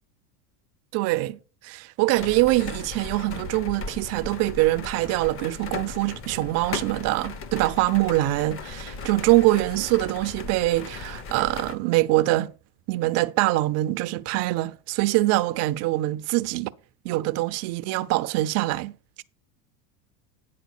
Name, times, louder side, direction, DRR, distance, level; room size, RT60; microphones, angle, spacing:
voice 1, 0.9-1.4 1.6-12.5 12.9-16.7 17.0-18.9, right 18 dB, 35° right, 0.4 m, -24 dB
sound 1, 2.2-11.8, left 4 dB, 30° left, 0.8 m, -37 dB
9.3 x 4.4 x 6.4 m
supercardioid pair, 130°, 46 cm